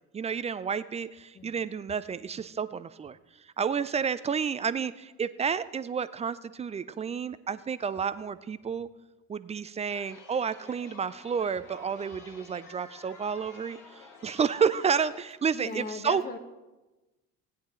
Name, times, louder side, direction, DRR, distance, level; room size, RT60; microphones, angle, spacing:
voice 1, 0.1-3.2 3.6-8.9 9.3-16.2, right 6 dB, 15° right, 15 dB, 0.3 m, -30 dB
Chatter, 9.9-15.2, left 4 dB, 50° left, 1.9 m, -51 dB
voice 2, 15.5-16.4, left 4 dB, 25° left, 5 dB, 1.0 m, -37 dB
16.0 x 9.6 x 3.7 m, 1.1 s
hypercardioid pair, 60°, 41 cm